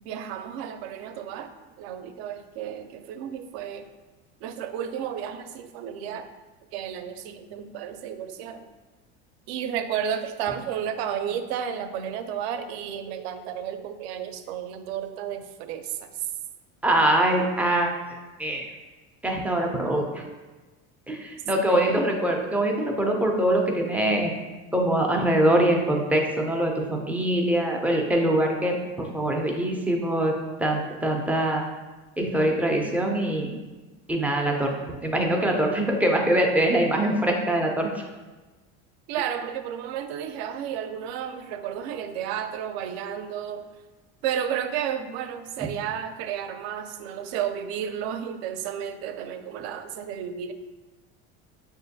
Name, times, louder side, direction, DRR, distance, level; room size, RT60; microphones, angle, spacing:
voice 1, 0.0-3.9 4.4-6.3 6.7-8.7 9.5-16.3 21.7-22.0 37.0-37.1 39.1-43.7 44.2-50.5, right 9 dB, 80° right, 9 dB, 0.5 m, -32 dB
voice 2, 16.8-18.0 18.4-18.7 19.2-20.2 21.1-24.3 24.7-30.3 30.6-31.7 32.2-33.5 34.1-34.7 35.0-38.0, right 1 dB, 5° right, 0 dB, 0.3 m, -23 dB
6.1 x 2.5 x 2.6 m, 1.2 s
supercardioid pair, 130°, 31 cm